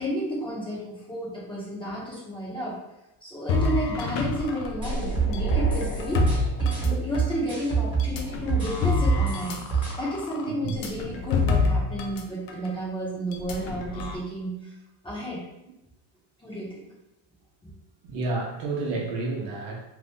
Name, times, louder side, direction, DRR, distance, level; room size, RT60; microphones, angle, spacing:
voice 1, 0.0-2.8 3.2-14.7 15.0-15.4 16.4-16.8, right 1 dB, 10° left, -7 dB, 1.0 m, -32 dB
sound 1, 3.5-7.4 8.0-12.2 12.5-12.7 13.3-14.2, left 3 dB, 60° left, 0.7 m, -27 dB
sound 2, 4.8-8.2 8.5-9.9, right 6 dB, 10° right, 1.2 m, -26 dB
voice 2, 10.4-10.8 18.0-19.8, right 3 dB, 60° right, -1 dB, 0.9 m, -30 dB
2.9 x 2.5 x 3.6 m, 0.93 s
cardioid pair, 135°, 49 cm